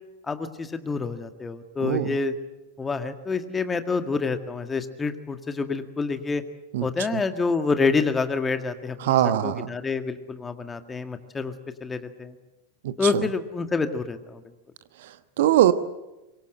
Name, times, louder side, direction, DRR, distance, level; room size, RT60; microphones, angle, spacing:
voice 1, 0.3-2.3 2.8-6.4 6.8-11.5 11.8-12.4 13.0-14.4, left 4 dB, 15° left, 9 dB, 1.9 m, -27 dB
voice 2, 1.8-2.2 6.7-6.9 7.1-7.2 9.0-9.7 12.8-12.9 15.0-15.7, right 12 dB, 55° right, 13 dB, 1.2 m, -22 dB
25.0 x 23.0 x 7.9 m, 1.0 s
figure-of-eight pair, 90°, 0 cm